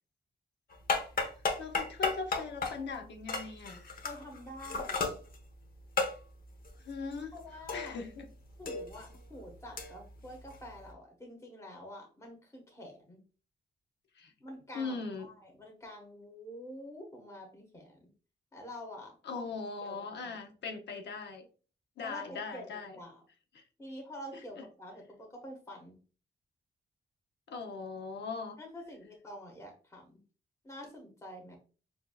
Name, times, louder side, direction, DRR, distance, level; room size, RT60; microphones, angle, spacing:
sound 1, 0.7-8.2 8.5-10.9, left 4 dB, 55° left, 1.0 m, -36 dB
voice 1, 1.6-4.0 6.8-7.3 7.7-8.3 14.1-14.3 14.7-15.3 19.2-21.5 22.0-23.0 23.5-23.6 24.3-24.7 27.5-28.6, left 4 dB, 85° left, 0.8 m, -40 dB
voice 2, 4.0-5.0 7.3-8.0 8.6-13.2 14.4-18.1 18.5-19.4 19.8-20.4 22.0-22.7 22.9-23.2 23.8-26.0 28.6-30.2 30.6-31.6, equal, 15° left, 1.4 m, -47 dB
6.8 x 2.8 x 2.3 m
wide cardioid pair, 180°, 18 cm